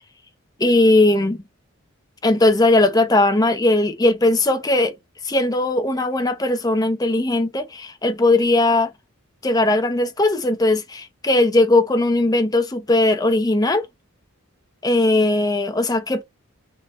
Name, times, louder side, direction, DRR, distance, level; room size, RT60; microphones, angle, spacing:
voice 1, 0.6-1.4 2.2-4.9 5.2-8.9 9.4-13.8 14.8-16.2, left 2 dB, 20° left, 0.6 m, -18 dB
3.7 x 2.5 x 3.9 m
head